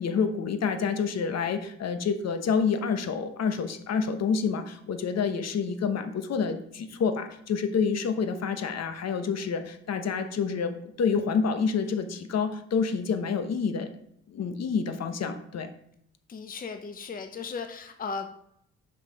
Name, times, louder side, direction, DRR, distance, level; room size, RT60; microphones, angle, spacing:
voice 1, 0.0-10.7 11.0-13.9 14.3-15.7, left 5 dB, 60° left, 8 dB, 1.1 m, -28 dB
voice 2, 16.3-18.3, left 5 dB, 30° left, 6 dB, 0.7 m, -36 dB
6.4 x 4.8 x 5.2 m, 0.71 s
cardioid pair, 90°, 30 cm